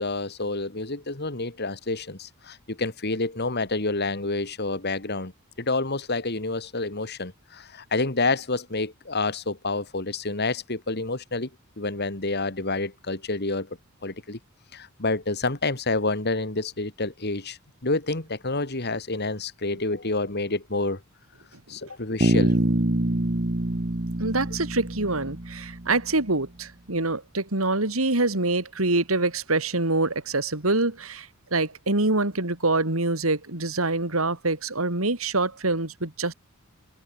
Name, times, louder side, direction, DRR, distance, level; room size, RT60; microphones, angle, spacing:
voice 1, 0.0-5.3 5.6-11.5 11.8-13.7 14.0-14.4 14.7-21.0 21.7-22.6, left 3 dB, 50° left, 2.8 m, -28 dB
Bass guitar, 22.2-26.1, right 1 dB, 40° right, 1.3 m, -25 dB
voice 2, 24.2-36.3, right 2 dB, 85° right, 3.6 m, -25 dB
head